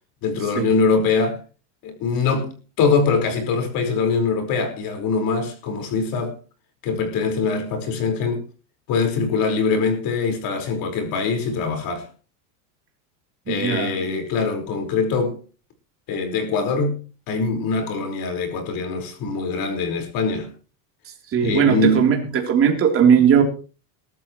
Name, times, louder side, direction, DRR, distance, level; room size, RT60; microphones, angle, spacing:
voice 1, 0.2-1.4 1.8-6.3 6.8-8.5 8.9-12.1 13.5-15.4 16.1-20.5 21.4-22.1, left 4 dB, 45° left, 4.8 m, -23 dB
voice 2, 13.5-14.0 21.3-23.4, right 7 dB, 25° right, 3.4 m, -18 dB
22.0 x 13.5 x 3.1 m
cardioid pair, 160°, 48 cm